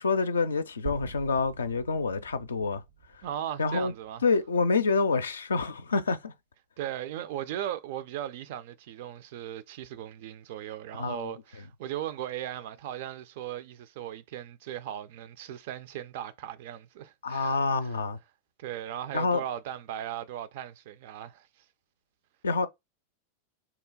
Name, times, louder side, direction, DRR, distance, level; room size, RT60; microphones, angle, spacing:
voice 1, 0.0-2.8 3.6-3.9 4.2-6.3 11.0-11.3 17.2-18.2 19.1-19.4 22.4-22.7, left 4 dB, 70° left, 0.4 m, -27 dB
sound 1, 0.9-5.1, right 6 dB, 75° right, 0.7 m, -45 dB
voice 2, 3.2-4.2 6.8-18.0 18.6-21.5, right 11 dB, 50° right, 0.3 m, -38 dB
2.9 x 2.2 x 3.7 m
figure-of-eight pair, 90°, 0 cm